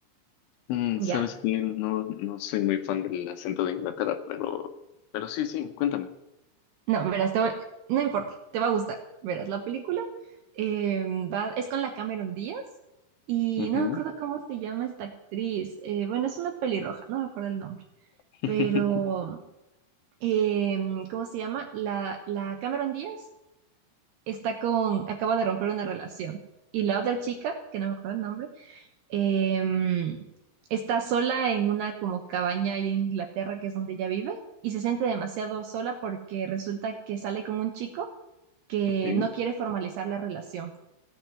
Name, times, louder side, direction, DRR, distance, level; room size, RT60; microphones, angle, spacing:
voice 1, 0.7-4.7 5.1-6.1 13.6-14.0 18.4-18.8 39.0-39.3, left 12 dB, 75° left, 9 dB, 3.2 m, -29 dB
voice 2, 6.9-7.6 7.9-9.0 9.2-10.1 10.6-12.6 13.3-17.8 18.5-19.4 20.2-23.3 24.3-26.4 26.7-30.2 30.7-38.1 38.7-40.7, right 8 dB, 75° right, 4 dB, 2.5 m, -29 dB
16.5 x 7.5 x 9.3 m, 0.94 s
omnidirectional pair, 5.9 m